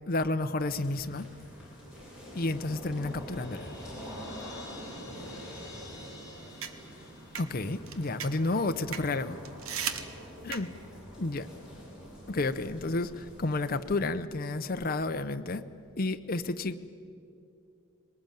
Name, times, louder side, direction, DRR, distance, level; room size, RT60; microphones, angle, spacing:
voice 1, 0.1-1.3 2.3-3.7 7.4-9.4 10.4-10.7 11.2-11.5 12.3-15.7 16.0-16.9, left 2 dB, 45° left, 8 dB, 0.7 m, -31 dB
sound 1, 0.6-14.0, equal, 5° right, 7.3 m, -47 dB
Crash cymbal, 2.9-7.9, left 1 dB, 15° left, 4.8 m, -48 dB
voice 2, 4.5-6.8 9.7-11.7, equal, 55° right, -3 dB, 7.4 m, -55 dB
sound 2, 5.9-11.0, right 8 dB, 80° right, 1.2 m, -40 dB
21.0 x 19.0 x 9.1 m, 2.5 s
head